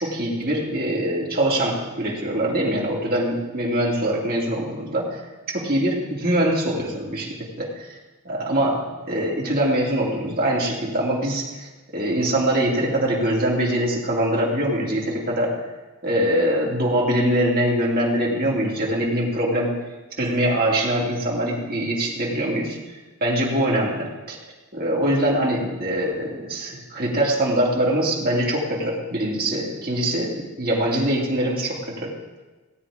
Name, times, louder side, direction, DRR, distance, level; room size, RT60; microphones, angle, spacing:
voice 1, 0.0-5.2 5.5-8.0 8.2-15.6 16.0-19.7 20.2-22.8 23.2-24.4 24.7-32.1, right 1 dB, 45° right, -3 dB, 2.9 m, -23 dB
17.0 x 8.9 x 5.0 m, 1.2 s
head